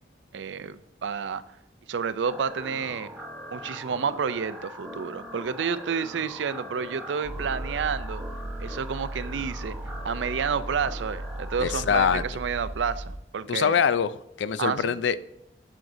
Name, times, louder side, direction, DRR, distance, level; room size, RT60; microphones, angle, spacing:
voice 1, 0.3-1.4 1.9-3.1 3.5-8.2 8.6-9.8 10.0-13.8 14.6-15.0, right 6 dB, 90° right, 14 dB, 0.4 m, -30 dB
sound 1, 2.2-12.2, equal, 5° right, 0.9 m, -42 dB
sound 2, 7.2-13.2, right 1 dB, 35° right, 0.6 m, -36 dB
voice 2, 11.6-12.2 13.5-15.3, left 7 dB, 85° left, 16 dB, 0.4 m, -24 dB
7.7 x 7.4 x 2.6 m, 0.85 s
head